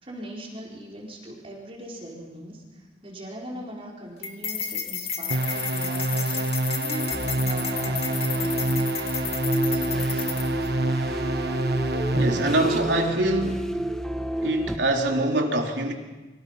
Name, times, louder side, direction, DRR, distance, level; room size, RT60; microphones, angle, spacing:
voice 1, 0.0-6.4 6.7-8.8 9.6-10.4, right 1 dB, 30° right, -3 dB, 4.6 m, -40 dB
sound 1, 4.2-10.7, left 7 dB, 35° left, 2.2 m, -32 dB
sound 2, 5.3-12.9, right 2 dB, 65° right, 1.4 m, -27 dB
sound 3, 7.1-14.8, right 1 dB, 5° left, 1.2 m, -30 dB
voice 2, 12.1-13.8 14.4-15.9, right 1 dB, 85° right, 2 dB, 3.7 m, -24 dB
29.0 x 25.0 x 5.8 m, 1.2 s
head